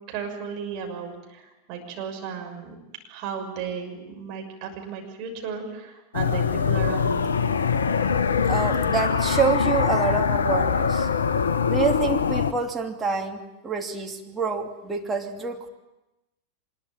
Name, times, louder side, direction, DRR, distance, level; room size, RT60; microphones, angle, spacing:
voice 1, 0.1-2.8 3.1-7.3, right 6 dB, 40° right, 2 dB, 6.4 m, -34 dB
sound 1, 6.1-12.5, left 6 dB, 70° left, 0.9 m, -23 dB
voice 2, 8.5-11.1 11.7-15.7, right 5 dB, 15° right, 2 dB, 2.8 m, -27 dB
25.0 x 22.0 x 9.0 m, 0.97 s
figure-of-eight pair, 90°, 0 cm